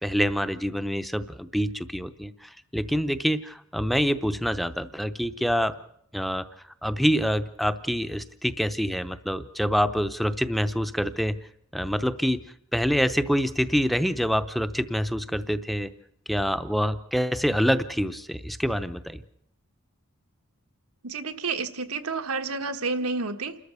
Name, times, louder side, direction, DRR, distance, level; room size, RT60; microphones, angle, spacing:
voice 1, 0.0-5.7 6.1-6.5 6.8-11.4 11.7-12.4 12.7-15.9 16.3-19.2, equal, ahead, 12 dB, 0.7 m, -26 dB
voice 2, 21.0-23.6, right 4 dB, 90° right, 6 dB, 1.4 m, -30 dB
29.0 x 13.5 x 6.9 m, 0.73 s
head